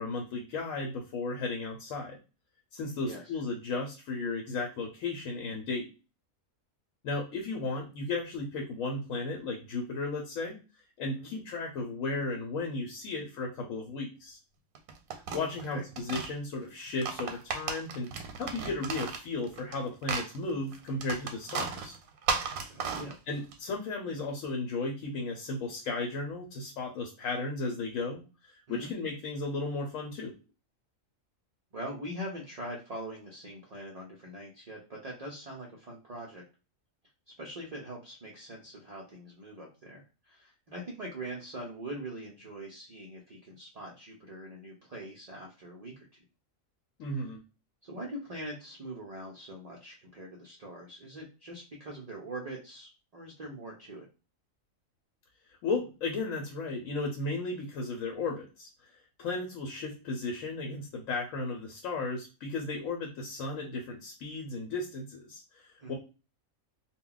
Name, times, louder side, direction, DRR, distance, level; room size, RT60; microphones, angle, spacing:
voice 1, 0.0-2.2 2.7-5.9 7.0-10.6 11.0-14.4 15.3-22.0 23.3-30.3 47.0-47.4 55.5-58.7 59.2-65.9, left 3 dB, 80° left, 1 dB, 1.0 m, -35 dB
sound 1, 14.7-16.3 16.9-19.8 20.0-23.5, right 5 dB, 90° right, 1.0 m, -35 dB
voice 2, 22.6-23.1 28.7-28.9 31.7-36.4 37.4-46.1 47.1-47.2 47.8-54.1 65.8-65.9, right 1 dB, 60° right, -1 dB, 0.4 m, -42 dB
2.2 x 2.2 x 3.7 m, 0.31 s
omnidirectional pair, 1.4 m